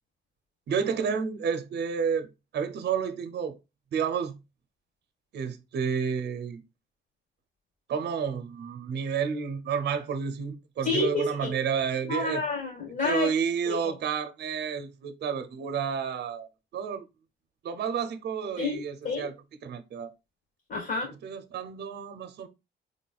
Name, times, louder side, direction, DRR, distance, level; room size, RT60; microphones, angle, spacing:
voice 1, 0.7-2.3 2.5-3.6 3.9-4.3 5.3-6.6 7.9-12.4 13.0-17.1 17.6-19.3 19.6-20.1 21.2-22.5, right 6 dB, 60° right, 0.6 m, -30 dB
voice 2, 10.8-11.5 12.1-13.3 13.7-13.9 18.6-19.3 20.7-21.1, left 3 dB, 50° left, 1.8 m, -29 dB
4.0 x 3.2 x 2.3 m
cardioid pair, 90°, 20 cm